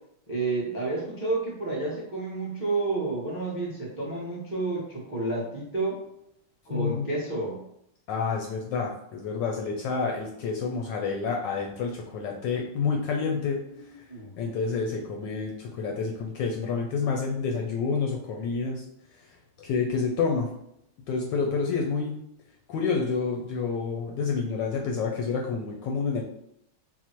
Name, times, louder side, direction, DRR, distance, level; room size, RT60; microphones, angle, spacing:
voice 1, 0.3-6.0 6.6-7.6 13.3-13.4 14.1-14.3, right 3 dB, 15° right, -4 dB, 0.5 m, -30 dB
voice 2, 6.7-7.1 8.1-13.6 13.9-14.0 14.4-18.8 19.1-20.5 21.1-22.2 22.7-26.2, left 5 dB, 75° left, 1 dB, 1.1 m, -29 dB
4.1 x 2.1 x 4.4 m, 0.75 s
omnidirectional pair, 2.3 m